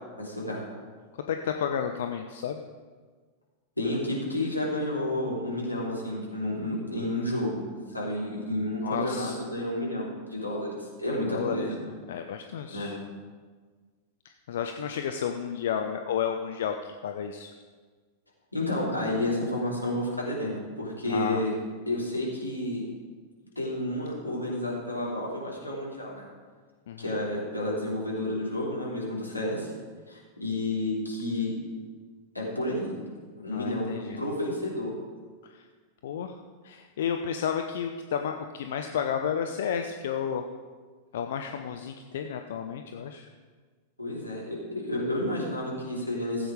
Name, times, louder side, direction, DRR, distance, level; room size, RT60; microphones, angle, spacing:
voice 1, 0.2-0.6 3.8-11.6 12.7-12.9 18.5-21.5 21.9-22.8 23.5-26.2 27.0-29.7 30.1-31.5 32.3-32.9 33.4-34.9 44.0-46.5, left 1 dB, 85° left, -5 dB, 3.2 m, -31 dB
voice 2, 1.3-2.6 8.8-9.4 11.3-11.7 12.1-13.0 14.2-17.5 21.1-21.4 26.9-27.1 33.5-34.2 35.5-35.6 36.0-36.4 36.6-40.4 41.1-43.3, left 8 dB, 60° left, 6 dB, 0.6 m, -32 dB
14.5 x 8.1 x 4.9 m, 1.5 s
figure-of-eight pair, 90°, 0 cm